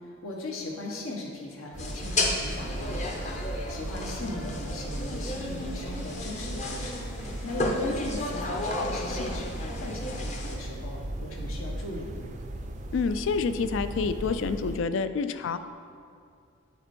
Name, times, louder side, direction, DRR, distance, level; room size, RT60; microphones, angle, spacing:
voice 1, 0.2-12.3, left 2 dB, 80° left, -1 dB, 1.2 m, -38 dB
sound 1, 1.7-14.8, right 1 dB, 35° right, 0.4 m, -37 dB
sound 2, 1.8-10.6, left 2 dB, 35° left, 0.7 m, -33 dB
voice 2, 12.9-15.6, left 5 dB, 65° left, 11 dB, 0.3 m, -28 dB
8.1 x 4.4 x 4.3 m, 2.3 s
head